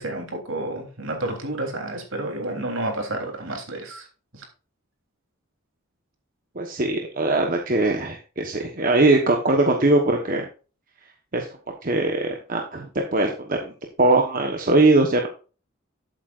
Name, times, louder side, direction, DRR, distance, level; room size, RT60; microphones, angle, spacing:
voice 1, 0.0-4.1 4.3-4.4, right 2 dB, 65° right, 3 dB, 3.4 m, -30 dB
voice 2, 6.5-10.4 11.3-11.5 11.8-13.7 14.0-15.3, right 2 dB, 40° right, 2 dB, 1.1 m, -21 dB
13.0 x 8.2 x 2.5 m, 0.35 s
head